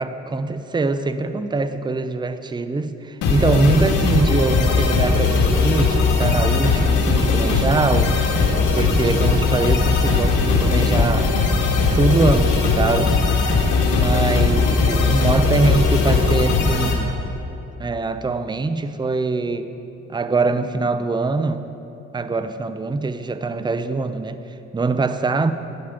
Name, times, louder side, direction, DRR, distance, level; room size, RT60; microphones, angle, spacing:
voice 1, 0.0-8.2 8.6-11.4 11.9-13.2 13.9-17.2 17.8-19.8 20.1-21.7 22.1-25.5, right 3 dB, 15° right, 11 dB, 0.6 m, -23 dB
sound 1, 3.2-16.9, left 4 dB, 85° left, 1.9 m, -18 dB
11.5 x 9.5 x 5.9 m, 2.9 s
cardioid pair, 90°, 30 cm